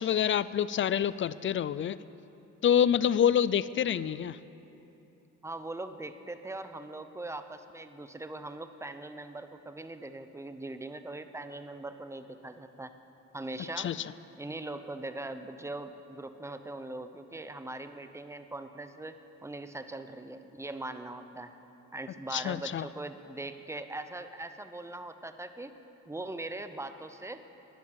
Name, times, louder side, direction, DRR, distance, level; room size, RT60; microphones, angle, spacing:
voice 1, 0.0-2.0 2.6-4.4 13.8-14.0 22.3-22.8, left 9 dB, 40° left, 18 dB, 0.4 m, -27 dB
voice 2, 5.4-12.9 13.3-13.9 14.4-21.5 21.9-25.8 26.1-27.4, right 2 dB, 10° right, 10 dB, 0.8 m, -41 dB
13.0 x 10.5 x 8.0 m, 2.9 s
cardioid pair, 90°, 30 cm